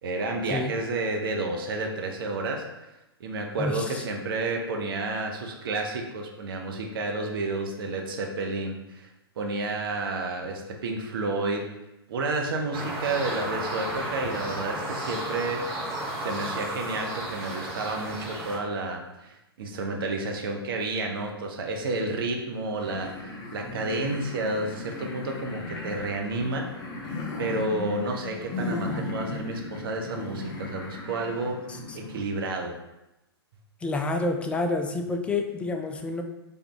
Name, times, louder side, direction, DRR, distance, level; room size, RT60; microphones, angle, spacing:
voice 1, 0.0-2.6 3.2-9.1 9.4-11.6 12.1-15.6 16.2-26.7 27.4-31.6 31.9-32.7, right 2 dB, 60° right, 2 dB, 0.7 m, -30 dB
voice 2, 3.6-4.0 31.7-32.0 33.8-36.2, left 2 dB, 10° left, 5 dB, 0.3 m, -29 dB
sound 1, 12.7-18.6, right 1 dB, 35° right, 1.4 m, -33 dB
sound 2, 22.8-32.2, left 2 dB, 30° left, 0.7 m, -36 dB
3.3 x 3.1 x 3.8 m, 0.94 s
figure-of-eight pair, 115°, 13 cm